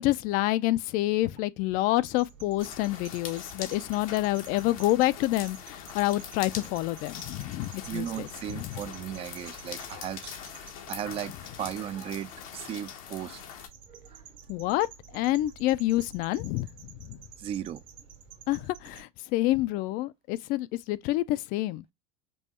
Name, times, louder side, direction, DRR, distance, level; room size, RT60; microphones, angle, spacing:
voice 1, 0.0-8.8 14.5-17.2 18.5-21.8, left 16 dB, 55° left, 0.4 m, -28 dB
sound 1, 2.1-19.0, right 7 dB, 65° right, 1.6 m, -51 dB
sound 2, 2.6-13.7, left 9 dB, 90° left, 1.0 m, -43 dB
voice 2, 7.9-13.4 13.9-14.2 17.4-17.8, right 10 dB, 35° right, 0.4 m, -37 dB
5.4 x 2.3 x 2.8 m
supercardioid pair, 125°, 18 cm